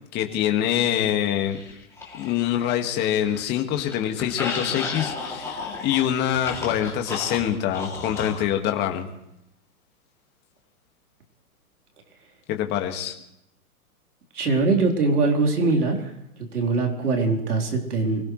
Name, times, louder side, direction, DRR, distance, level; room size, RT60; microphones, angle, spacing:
voice 1, 0.1-1.6 2.1-9.1 12.5-13.2, left 10 dB, 25° left, 4 dB, 1.9 m, -25 dB
sound 1, 1.5-2.8 3.2-8.5, left 4 dB, 5° left, 2.8 m, -34 dB
voice 2, 14.3-16.1 16.5-18.2, right 3 dB, 85° right, 1 dB, 4.0 m, -22 dB
25.0 x 17.0 x 3.2 m, 0.81 s
hypercardioid pair, 145°, 44 cm